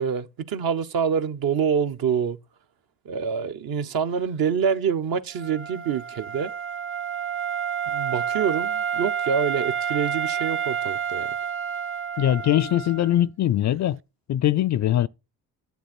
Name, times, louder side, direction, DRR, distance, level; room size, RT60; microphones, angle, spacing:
voice 1, 0.0-2.4 3.0-6.5 7.9-11.3, right 7 dB, 55° right, 1.0 m, -26 dB
Wind instrument woodwind instrument, 5.3-13.1, right 8 dB, 30° right, 0.5 m, -29 dB
voice 2, 12.2-14.0 14.3-15.1, left 12 dB, 40° left, 0.5 m, -21 dB
9.3 x 7.9 x 4.4 m
hypercardioid pair, 55°, 43 cm